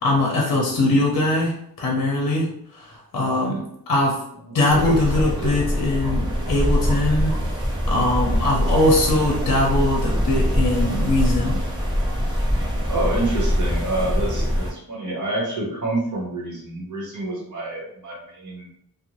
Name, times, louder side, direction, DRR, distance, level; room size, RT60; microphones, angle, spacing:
voice 1, 0.0-3.6 3.9-4.2 4.5-7.4 7.9-11.6, left 2 dB, 55° left, -2 dB, 0.7 m, -21 dB
voice 2, 4.4-5.6 12.8-18.7, right 2 dB, 50° right, -3 dB, 1.0 m, -28 dB
sound 1, 4.7-14.7, equal, 10° right, 0.8 m, -23 dB
2.5 x 2.1 x 3.0 m, 0.73 s
wide cardioid pair, 130°, 38 cm